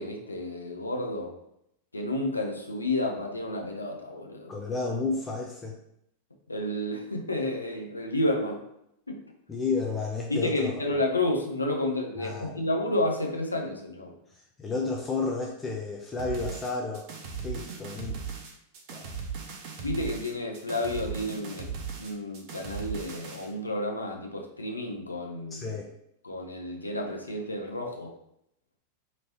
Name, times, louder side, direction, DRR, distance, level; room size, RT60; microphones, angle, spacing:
voice 1, 0.0-1.3 1.9-4.5 6.5-8.6 9.1-9.2 10.3-14.1 19.8-21.7 22.0-25.7 26.2-28.2, left 1 dB, 80° left, 2 dB, 0.5 m, -31 dB
voice 2, 4.5-5.8 9.5-10.8 12.2-12.6 14.6-17.1 17.4-18.2 18.9-19.1 25.5-25.9, left 4 dB, 15° left, -1 dB, 0.4 m, -31 dB
sound 1, 16.2-23.5, right 6 dB, 45° right, 0.5 m, -38 dB
2.9 x 2.8 x 2.7 m, 0.77 s
figure-of-eight pair, 90°, 0 cm